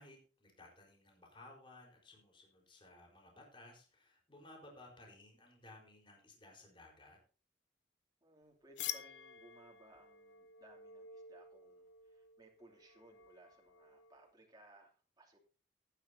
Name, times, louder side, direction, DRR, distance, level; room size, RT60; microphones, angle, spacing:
voice 1, 0.0-7.2, left 2 dB, 30° left, 0 dB, 4.4 m, -58 dB
voice 2, 8.2-15.4, right 1 dB, 25° right, -1 dB, 2.9 m, -62 dB
sound 1, 8.8-14.3, left 10 dB, 90° left, 0.9 m, -49 dB
18.0 x 10.0 x 2.8 m, 0.36 s
head